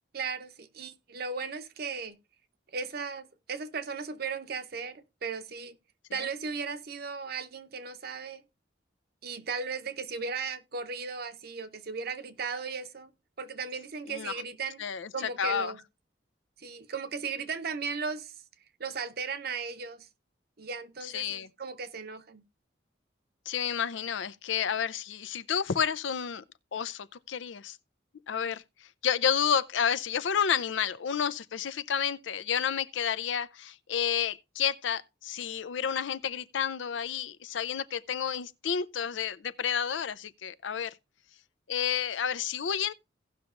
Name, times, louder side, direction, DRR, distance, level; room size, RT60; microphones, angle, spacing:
voice 1, 0.1-2.2 2.7-5.8 6.1-8.4 9.2-13.1 13.4-14.8 15.1-15.8 16.6-18.3 18.8-20.1 20.6-22.4, right 5 dB, 55° right, 0.8 m, -36 dB
voice 2, 14.8-15.1 15.4-15.7 21.0-21.5 23.5-26.4 26.7-27.8 28.3-28.6 29.0-40.9 41.7-42.9, left 8 dB, 75° left, 0.5 m, -30 dB
17.5 x 5.9 x 2.5 m
head